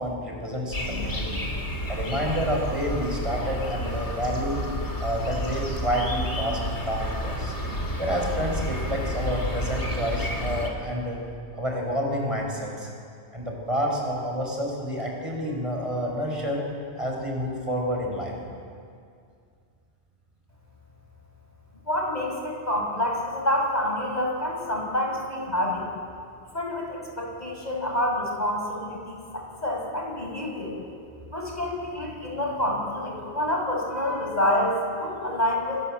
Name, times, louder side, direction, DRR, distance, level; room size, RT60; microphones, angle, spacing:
voice 1, 0.0-4.6 5.0-6.6 6.9-7.5 8.0-11.2 11.5-12.9 13.3-16.6 17.0-18.3, equal, 30° right, 0 dB, 6.2 m, -29 dB
sound 1, 0.7-10.7, left 1 dB, 80° left, 3.8 m, -30 dB
voice 2, 21.8-25.9 26.5-30.7 31.3-35.9, left 1 dB, 40° left, 0 dB, 6.5 m, -27 dB
28.5 x 23.5 x 8.1 m, 2.3 s
omnidirectional pair, 1.1 m